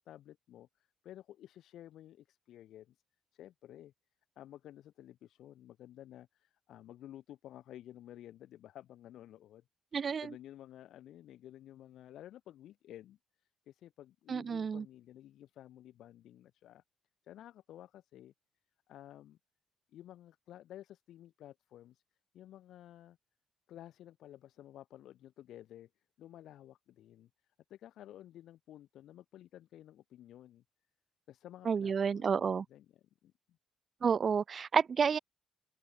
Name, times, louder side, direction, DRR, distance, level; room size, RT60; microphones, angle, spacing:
voice 1, 0.0-3.0 3.3-3.9 4.4-9.6 10.2-16.8 17.2-18.3 18.9-19.4 19.9-22.0 22.3-23.2 23.7-25.9 26.2-27.3 27.7-30.6 31.3-32.8 33.2-33.3, left 12 dB, 80° left, 6.6 m, -53 dB
voice 2, 9.9-10.3 14.3-14.8 31.7-32.6 34.0-35.2, right 6 dB, 45° right, 0.6 m, -30 dB
cardioid pair, 90°, 0 cm